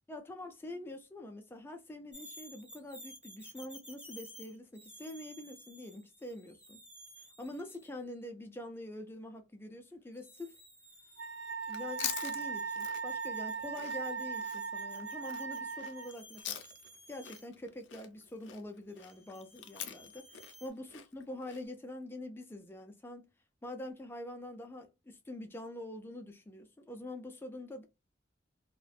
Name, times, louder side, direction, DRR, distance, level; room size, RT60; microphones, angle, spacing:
voice 1, 0.1-6.8 7.2-10.6 11.7-16.6 17.1-23.3 23.6-27.8, left 1 dB, 10° left, 0.3 m, -45 dB
sound 1, 2.1-8.0 10.1-17.5 19.0-20.7, equal, 5° right, 0.7 m, -55 dB
Wind instrument woodwind instrument, 11.2-16.1, right 5 dB, 80° right, 0.5 m, -38 dB
Chewing mastication, 11.6-17.0 17.2-21.6, left 10 dB, 80° left, 0.5 m, -44 dB
2.5 x 2.1 x 2.3 m
head